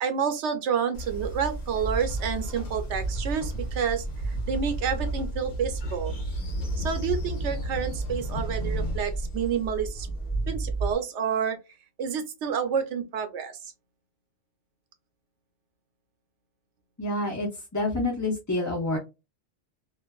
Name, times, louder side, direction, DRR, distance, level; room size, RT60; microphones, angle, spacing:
voice 1, 0.0-4.0 4.5-6.1 6.8-10.1 10.5-11.6 12.0-13.5, right 7 dB, 80° right, 0.9 m, -29 dB
Train, 0.9-10.9, right 1 dB, 40° left, 0.9 m, -31 dB
voice 2, 17.0-19.0, left 2 dB, 20° left, 0.5 m, -28 dB
2.5 x 2.4 x 2.2 m
omnidirectional pair, 1.2 m